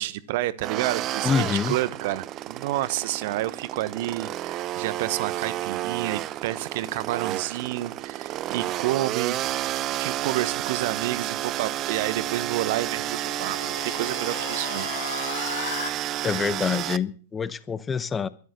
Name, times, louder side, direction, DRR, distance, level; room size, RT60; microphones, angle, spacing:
voice 1, 0.0-1.3 1.7-9.4 9.9-14.9, right 15 dB, 50° right, 1.0 m, -29 dB
sound 1, 0.6-17.0, right 14 dB, 35° right, 0.6 m, -31 dB
voice 2, 1.2-1.8 16.2-18.3, left 6 dB, 20° left, 0.9 m, -26 dB
sound 2, 11.9-15.9, left 9 dB, 65° left, 1.4 m, -37 dB
13.0 x 11.5 x 8.0 m
figure-of-eight pair, 95°, 0 cm